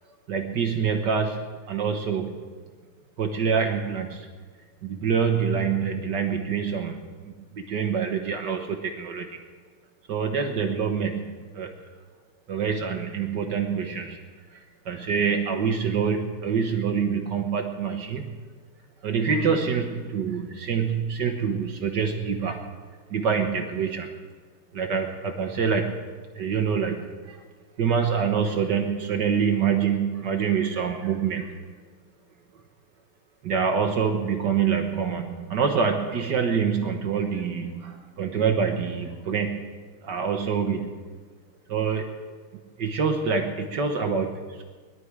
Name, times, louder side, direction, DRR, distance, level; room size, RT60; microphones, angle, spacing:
voice 1, 0.3-2.4 3.2-4.3 4.8-7.0 7.2-9.4 10.1-11.7 12.5-14.2 14.8-18.3 19.0-22.6 23.1-24.1 24.7-26.0 26.3-27.4 27.8-31.6 33.4-39.7 40.0-41.0 41.7-42.1 42.8-44.6, right 6 dB, 60° right, 4 dB, 1.6 m, -26 dB
21.0 x 12.0 x 4.8 m, 1.5 s
omnidirectional pair, 2.4 m